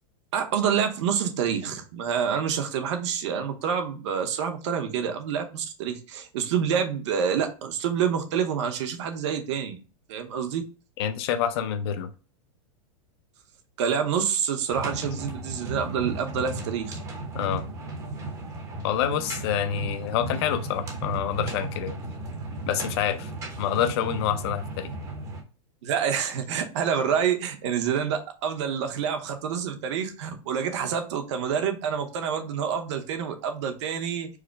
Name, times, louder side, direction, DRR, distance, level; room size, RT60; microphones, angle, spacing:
voice 1, 0.3-9.8 10.1-10.6 13.8-17.0 25.8-34.3, right 7 dB, 55° right, 6 dB, 0.9 m, -27 dB
voice 2, 11.0-12.1 17.3-17.6 18.8-22.0 22.7-23.3 23.6-24.9, left 9 dB, 50° left, 9 dB, 0.6 m, -27 dB
sound 1, 14.7-25.4, right 2 dB, 20° right, 0.7 m, -35 dB
4.8 x 2.1 x 4.6 m, 0.34 s
supercardioid pair, 165°, 17 cm